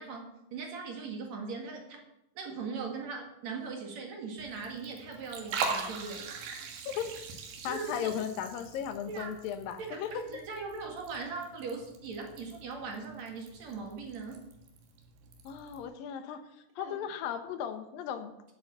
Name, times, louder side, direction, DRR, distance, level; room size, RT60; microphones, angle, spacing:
voice 1, 0.0-2.0 2.3-6.2 7.6-8.1 9.1-9.3 9.8-14.4 16.8-17.0, right 4 dB, 55° right, 2 dB, 3.0 m, -40 dB
Liquid, 4.4-15.8, right 5 dB, 85° right, 3.2 m, -42 dB
voice 2, 7.6-10.2 15.4-16.4 16.8-18.3, left 9 dB, 90° left, 9 dB, 2.8 m, -36 dB
9.9 x 8.0 x 8.2 m, 0.84 s
omnidirectional pair, 3.9 m